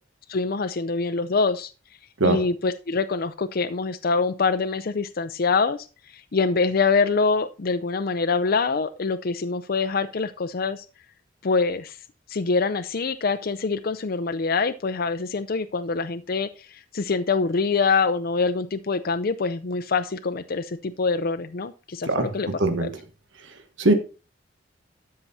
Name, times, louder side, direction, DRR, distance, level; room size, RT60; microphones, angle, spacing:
voice 1, 0.3-1.7 2.2-10.9 11.4-12.0 12.3-22.5 22.8-22.9, left 4 dB, 50° left, 9 dB, 0.5 m, -25 dB
voice 2, 22.1-22.9 23.8-23.9, right 2 dB, 70° right, 8 dB, 1.3 m, -21 dB
12.5 x 5.7 x 4.1 m, 0.32 s
head